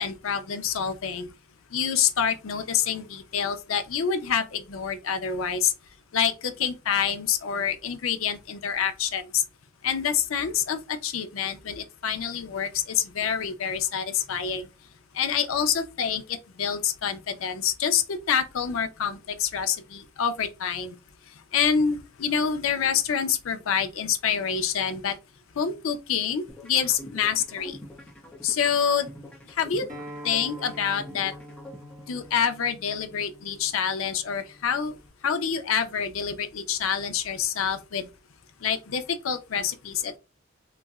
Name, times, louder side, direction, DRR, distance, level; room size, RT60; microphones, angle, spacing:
voice 1, 0.0-1.3 1.7-5.7 6.1-9.4 9.8-14.7 15.1-21.0 21.3-25.2 25.6-27.8 28.4-29.1 29.5-29.8 30.2-31.3 32.1-35.0 35.2-38.1 38.6-40.2, left 7 dB, 80° left, 0.5 m, -27 dB
sound 1, 26.5-32.5, left 1 dB, 5° left, 0.7 m, -45 dB
Acoustic guitar, 29.9-35.1, equal, 40° right, 0.9 m, -45 dB
4.0 x 2.0 x 2.3 m
head